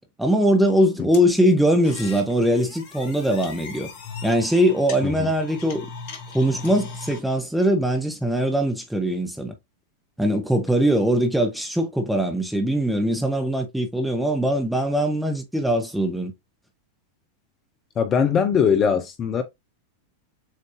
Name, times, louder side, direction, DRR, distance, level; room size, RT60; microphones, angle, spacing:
voice 1, 0.2-3.9 4.2-5.9 6.3-9.5 10.2-16.3, equal, ahead, 1.0 m, -21 dB
sound 1, 1.1-7.2, left 5 dB, 50° left, 1.1 m, -39 dB
voice 2, 18.0-19.4, left 7 dB, 30° left, 0.6 m, -21 dB
7.3 x 2.6 x 2.6 m
figure-of-eight pair, 90°, 0 cm